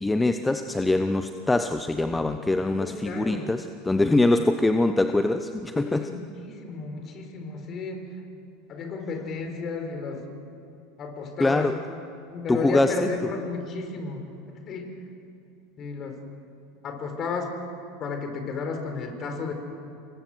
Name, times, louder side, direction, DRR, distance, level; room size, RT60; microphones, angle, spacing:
voice 1, 0.0-6.1 11.4-11.8 12.5-13.3, left 2 dB, 10° left, 8 dB, 1.0 m, -23 dB
voice 2, 2.7-3.5 5.7-8.0 8.7-10.2 11.0-11.8 12.3-14.9 15.8-16.2 16.8-17.5 18.0-19.5, left 4 dB, 40° left, 5 dB, 4.6 m, -33 dB
28.0 x 23.0 x 6.4 m, 2.8 s
figure-of-eight pair, 80°, 0 cm